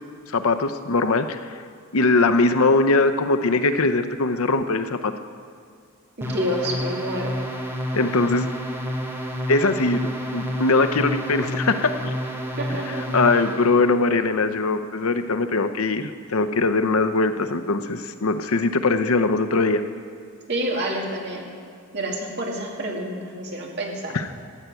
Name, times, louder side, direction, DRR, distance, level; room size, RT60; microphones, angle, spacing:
voice 1, 0.3-1.6 1.9-5.1 7.9-8.5 9.5-10.0 10.3-12.1 12.7-12.8 13.1-19.8 24.1-24.3, left 3 dB, 80° left, 10 dB, 0.7 m, -21 dB
sound 1, 6.2-13.8, equal, 10° right, 1.3 m, -30 dB
voice 2, 6.2-7.4 12.6-13.1 20.5-21.5 21.9-24.2, equal, 50° right, -1 dB, 2.3 m, -28 dB
14.0 x 8.2 x 9.1 m, 2.2 s
head